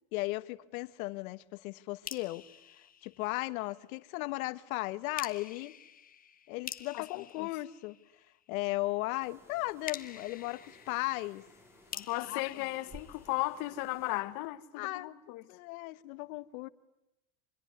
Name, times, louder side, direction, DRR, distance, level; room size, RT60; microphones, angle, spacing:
voice 1, 0.1-2.4 3.0-5.8 6.5-8.0 8.5-11.4 12.3-12.5 14.8-15.1 15.5-16.7, left 20 dB, 80° left, 1.3 m, -36 dB
sound 1, 2.1-3.8 5.2-8.5 9.9-13.8, left 8 dB, 20° left, 1.3 m, -47 dB
voice 2, 6.9-7.5 11.9-15.4, left 19 dB, 55° left, 1.6 m, -36 dB
sound 2, 9.2-14.2, left 1 dB, 5° right, 5.3 m, -57 dB
25.5 x 22.0 x 9.6 m
supercardioid pair, 150°, 42 cm